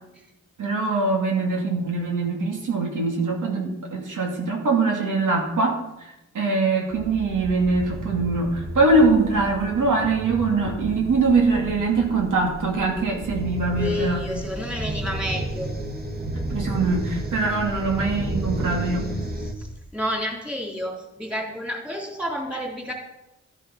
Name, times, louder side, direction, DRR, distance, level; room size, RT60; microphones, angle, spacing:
voice 1, 0.6-14.2 16.5-19.0, right 3 dB, 85° right, 0 dB, 2.7 m, -23 dB
sound 1, 6.9-19.5, right 1 dB, 30° right, 2.4 m, -32 dB
voice 2, 13.8-15.7 19.4-22.9, equal, 5° right, 0 dB, 3.4 m, -30 dB
13.0 x 8.8 x 6.0 m, 0.91 s
cardioid pair, 75°, 30 cm